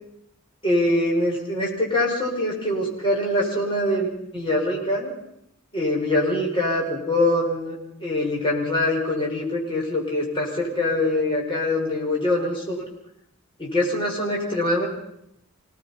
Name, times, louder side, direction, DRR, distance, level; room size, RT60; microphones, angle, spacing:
voice 1, 0.6-5.1 5.7-12.9 13.6-14.9, left 1 dB, 20° left, -2 dB, 5.5 m, -24 dB
25.5 x 18.5 x 5.6 m, 0.78 s
head